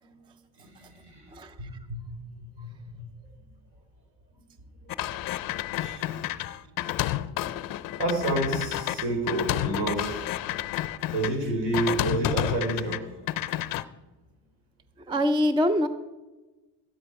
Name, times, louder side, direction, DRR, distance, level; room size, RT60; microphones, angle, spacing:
voice 1, 0.6-1.3 1.6-2.0 2.4-2.7 3.0-3.1 4.8-4.9 5.8-6.1 7.0-7.2 8.0-10.3 11.1-13.0, right 2 dB, 60° right, 2 dB, 4.0 m, -29 dB
sound 1, 4.9-11.3 11.7-13.0 13.3-13.8, left 14 dB, 50° left, 0.5 m, -30 dB
voice 2, 15.1-15.9, equal, 10° right, 12 dB, 0.3 m, -23 dB
13.0 x 9.9 x 4.7 m, 1.2 s
cardioid pair, 120°, 46 cm